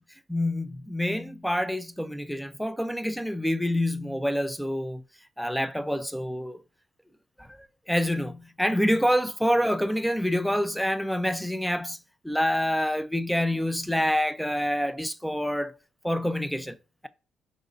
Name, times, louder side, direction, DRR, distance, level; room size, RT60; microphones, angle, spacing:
voice 1, 0.3-5.0 5.4-6.6 7.4-7.5 7.9-15.7 16.0-16.8, equal, ahead, 0.5 m, -27 dB
5.0 x 3.6 x 2.6 m
cardioid pair, 90°, 0 cm